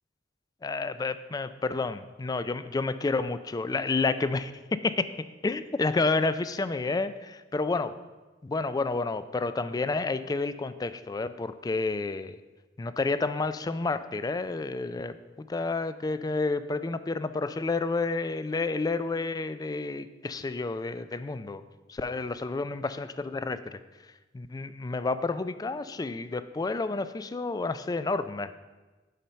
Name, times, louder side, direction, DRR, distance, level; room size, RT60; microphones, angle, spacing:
voice 1, 0.6-5.1 5.4-7.9 8.4-12.4 12.8-21.6 21.9-23.8 24.3-28.5, left 3 dB, 20° left, 13 dB, 0.3 m, -30 dB
7.3 x 5.4 x 5.6 m, 1.2 s
head